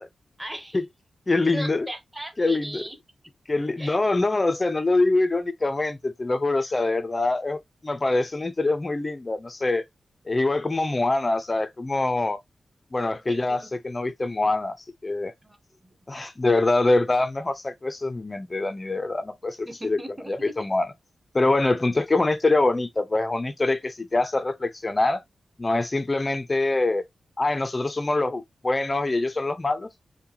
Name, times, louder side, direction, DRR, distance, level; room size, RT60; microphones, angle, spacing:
voice 1, 0.4-0.8 1.5-3.0 3.8-4.0 6.6-6.7 13.3-13.7 15.4-15.9 19.7-20.5, right 1 dB, 10° right, 0.9 m, -38 dB
voice 2, 1.3-1.9 2.4-2.8 3.5-9.8 10.3-12.4 12.9-14.8 15.0-15.3 16.1-20.0 20.3-20.9 21.3-25.2 25.6-27.0 27.4-29.9, left 2 dB, 20° left, 0.4 m, -24 dB
5.3 x 2.2 x 2.8 m
wide cardioid pair, 150°, 0 cm